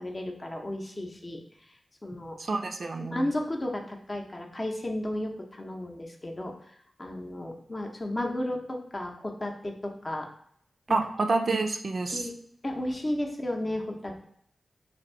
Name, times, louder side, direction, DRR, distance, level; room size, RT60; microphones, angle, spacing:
voice 1, 0.0-1.4 2.0-2.4 3.0-10.3 10.9-11.0 12.1-12.3 12.6-14.2, left 1 dB, 30° left, 1 dB, 0.7 m, -33 dB
voice 2, 2.5-3.2 10.9-12.2, right 3 dB, 60° right, 4 dB, 0.4 m, -28 dB
2.8 x 2.6 x 4.3 m, 0.69 s
wide cardioid pair, 80°, 0 cm